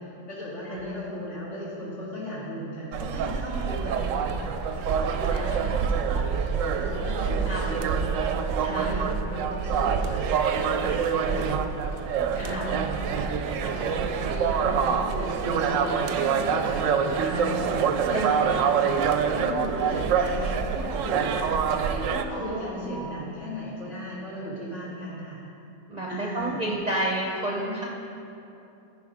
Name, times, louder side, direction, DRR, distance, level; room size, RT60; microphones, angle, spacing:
voice 1, 0.0-11.6 12.4-17.6 18.1-18.9 19.3-21.6 22.1-25.4 26.1-26.6 27.7-27.9, equal, 55° left, -9 dB, 3.1 m, -36 dB
sound 1, 2.9-22.2, right 6 dB, 70° right, 0.9 m, -26 dB
voice 2, 5.3-6.0 7.2-7.8 8.6-8.9 11.2-11.5 12.3-12.6 18.1-18.7 22.3-23.2 25.9-27.8, right 1 dB, 35° right, -3 dB, 0.8 m, -32 dB
13.5 x 5.1 x 5.0 m, 2.8 s
omnidirectional pair, 1.5 m